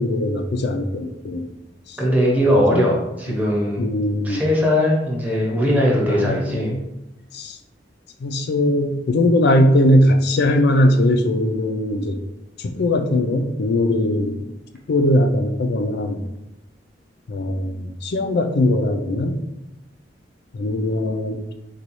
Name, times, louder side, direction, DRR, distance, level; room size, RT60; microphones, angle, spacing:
voice 1, 0.0-1.5 1.9-2.0 2.7-2.9 3.8-4.4 6.0-6.8 7.3-7.6 8.2-12.2 12.6-14.5 14.9-16.3 17.3-19.4 20.5-21.4, left 1 dB, 60° left, 7 dB, 0.4 m, -20 dB
voice 2, 2.0-3.9 4.2-6.7, equal, 10° right, -4 dB, 0.8 m, -19 dB
3.9 x 2.3 x 3.0 m, 0.93 s
head